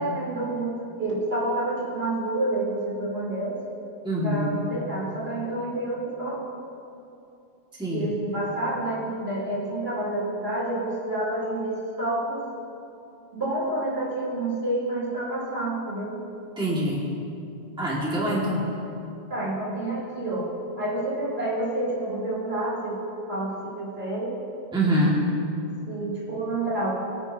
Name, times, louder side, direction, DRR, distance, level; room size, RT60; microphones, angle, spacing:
voice 1, 0.0-3.6 4.2-6.4 7.9-12.4 13.3-16.2 19.3-20.5 20.8-23.0 23.3-24.4 25.9-27.0, right 2 dB, 60° right, -7 dB, 3.7 m, -29 dB
voice 2, 4.0-4.5 7.8-8.1 16.6-17.0 17.8-18.7 24.7-25.2, equal, 5° right, -6 dB, 1.8 m, -24 dB
22.0 x 9.8 x 2.8 m, 2.7 s
omnidirectional pair, 1.2 m